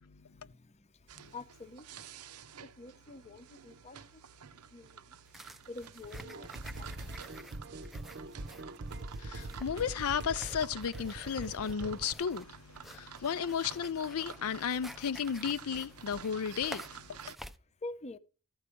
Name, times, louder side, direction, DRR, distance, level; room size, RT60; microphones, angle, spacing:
sound 1, 1.1-17.4, right 8 dB, 90° right, 0.8 m, -51 dB
voice 1, 1.2-1.8 2.8-4.0 4.7-4.9 5.7-6.5 6.8-7.3 17.8-18.2, left 2 dB, 30° left, 0.7 m, -46 dB
sound 2, 5.3-17.6, equal, ahead, 0.5 m, -52 dB
sound 3, 6.0-12.1, right 2 dB, 50° right, 0.7 m, -43 dB
voice 2, 9.2-17.2, left 7 dB, 70° left, 0.5 m, -34 dB
14.0 x 4.8 x 8.3 m
head